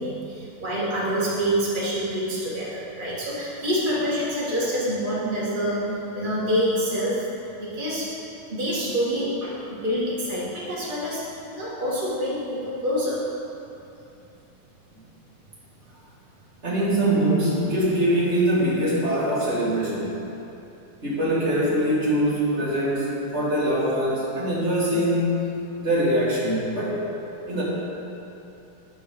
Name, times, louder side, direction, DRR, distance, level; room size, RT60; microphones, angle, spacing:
voice 1, 0.0-7.3 7.6-8.1 8.5-9.3 9.7-11.2 11.5-13.2, equal, 90° right, -9 dB, 0.4 m, -26 dB
voice 2, 16.6-20.2 21.0-25.5 25.8-27.0 27.5-27.6, right 1 dB, 25° right, -8 dB, 1.5 m, -23 dB
11.5 x 4.7 x 6.6 m, 2.9 s
omnidirectional pair, 4.3 m